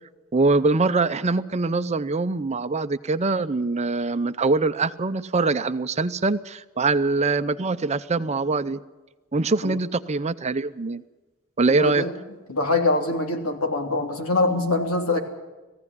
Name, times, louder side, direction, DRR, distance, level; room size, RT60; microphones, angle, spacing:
voice 1, 0.3-8.8 9.3-11.0 11.6-12.0, right 3 dB, 30° right, 12 dB, 0.6 m, -23 dB
voice 2, 11.7-12.1 12.5-15.2, left 2 dB, 80° left, 3 dB, 3.0 m, -24 dB
18.5 x 15.5 x 9.7 m, 1.1 s
head